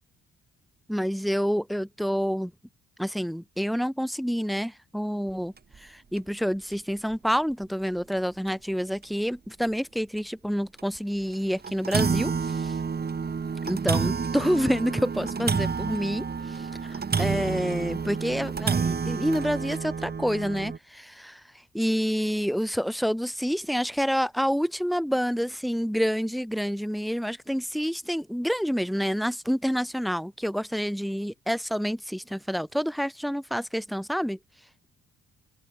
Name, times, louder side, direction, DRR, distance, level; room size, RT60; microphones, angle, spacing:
voice 1, 0.9-2.5 3.0-5.5 5.8-12.7 13.7-21.4 21.7-34.4, equal, ahead, 3.4 m, -28 dB
sound 1, 5.6-5.8 6.2-6.3 6.7-6.8 7.9-8.0 8.5-8.6 9.0-9.1 9.6-9.7 10.8-11.0 11.3-11.4 11.6-20.8, right 5 dB, 30° right, 2.1 m, -29 dB
open air
cardioid pair, 90°, 30 cm